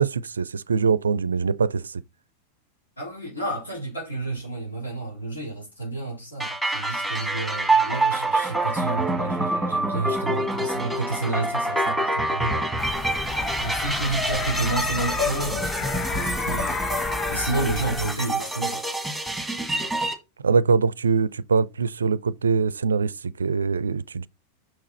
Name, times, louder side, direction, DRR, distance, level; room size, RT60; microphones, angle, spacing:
voice 1, 0.0-2.0 20.4-24.3, right 5 dB, 70° right, 0.4 m, -23 dB
voice 2, 3.0-12.8 13.6-16.8 17.3-18.8, right 2 dB, 75° left, 4.1 m, -30 dB
sound 1, 6.4-20.1, right 2 dB, ahead, 1.6 m, -27 dB
sound 2, 12.8-18.1, left 3 dB, 20° left, 0.8 m, -30 dB
6.1 x 6.0 x 4.1 m
figure-of-eight pair, 90°, 0 cm